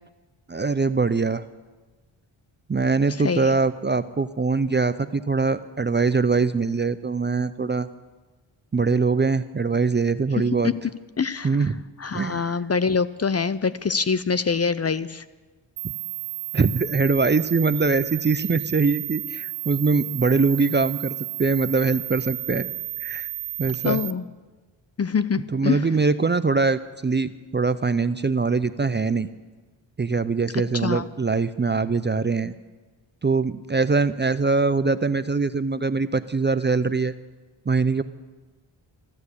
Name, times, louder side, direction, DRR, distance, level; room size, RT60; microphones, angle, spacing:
voice 1, 0.5-1.4 2.7-7.9 8.7-10.7 11.4-11.8 12.1-12.4 16.5-22.7 23.0-23.3 23.6-24.0 25.5-29.3 30.0-32.5 33.2-37.1 37.7-38.0, right 4 dB, 25° right, 13 dB, 0.5 m, -22 dB
voice 2, 3.2-3.5 10.6-10.7 11.2-11.7 12.0-15.2 23.8-24.3 25.0-25.8 30.5-31.0, left 5 dB, 30° left, 15 dB, 0.6 m, -25 dB
sound 1, 15.8-24.1, right 14 dB, 90° right, 0.6 m, -33 dB
14.5 x 12.0 x 8.4 m, 1.3 s
cardioid pair, 60°, 49 cm